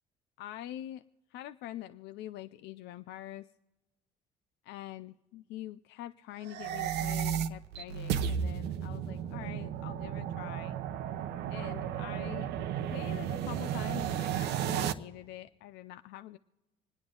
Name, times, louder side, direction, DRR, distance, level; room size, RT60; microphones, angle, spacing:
voice 1, 0.4-1.0 1.3-3.5 4.6-10.8 11.5-12.5 12.9-16.4, left 13 dB, 85° left, 11 dB, 0.5 m, -45 dB
sound 1, 6.4-14.9, right 9 dB, 85° right, 0.8 m, -33 dB
27.0 x 9.7 x 3.8 m, 1.1 s
cardioid pair, 110°, 17 cm